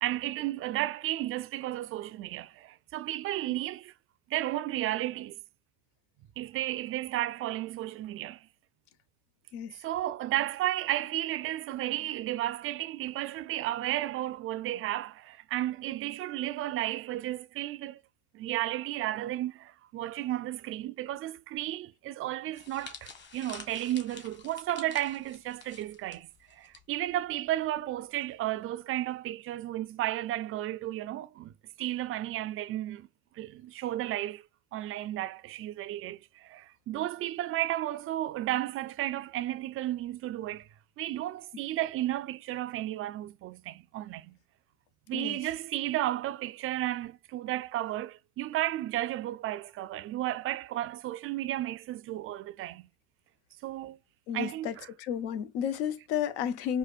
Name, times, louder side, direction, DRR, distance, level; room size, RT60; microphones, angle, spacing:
voice 1, 0.0-3.9 4.3-5.4 6.4-8.5 9.8-18.0 18.3-31.5 31.8-33.1 33.3-34.4 34.7-40.7 41.0-44.4 45.1-52.9 53.6-54.0 54.3-54.9, right 14 dB, 40° right, 0.4 m, -33 dB
sound 1, 22.5-26.8 27.1-27.3 28.2-28.5, left 5 dB, 30° left, 1.3 m, -48 dB
voice 2, 54.3-54.7 55.1-56.8, left 9 dB, 85° left, 0.7 m, -32 dB
4.9 x 2.1 x 2.4 m
supercardioid pair, 105°, 34 cm